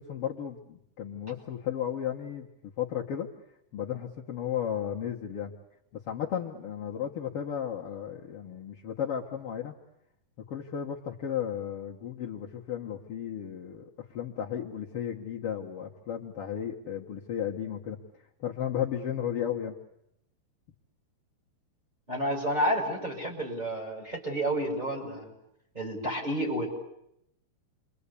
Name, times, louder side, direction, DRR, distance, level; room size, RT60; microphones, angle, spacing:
voice 1, 0.0-3.3 3.7-5.5 5.9-9.7 10.5-18.0 18.4-19.7, left 9 dB, 70° left, 0 dB, 1.3 m, -34 dB
voice 2, 22.1-25.3 25.7-26.7, right 1 dB, 10° right, 0 dB, 6.1 m, -30 dB
29.0 x 24.0 x 8.4 m, 0.79 s
omnidirectional pair, 4.7 m